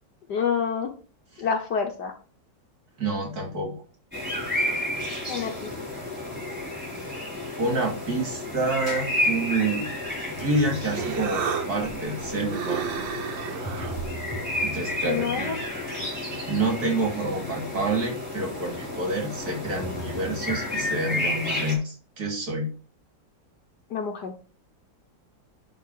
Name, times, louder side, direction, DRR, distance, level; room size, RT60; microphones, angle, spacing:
voice 1, 0.3-0.9 1.4-2.1 5.3-5.7 15.0-15.6 23.9-24.3, left 6 dB, 65° left, 4 dB, 1.5 m, -27 dB
voice 2, 3.0-3.7 6.9-7.3 7.6-9.8 10.4-12.9 14.6-15.5 16.5-22.7, right 2 dB, 55° right, 1 dB, 3.1 m, -28 dB
sound 1, 4.1-21.8, left 1 dB, 5° right, 4.9 m, -32 dB
sound 2, 10.4-12.4 13.0-18.0 18.3-19.0 19.3-20.9, right 1 dB, 15° left, 1.0 m, -42 dB
Human voice, 10.5-15.7, right 7 dB, 80° right, 1.8 m, -34 dB
11.0 x 4.1 x 5.6 m, 0.39 s
omnidirectional pair, 2.0 m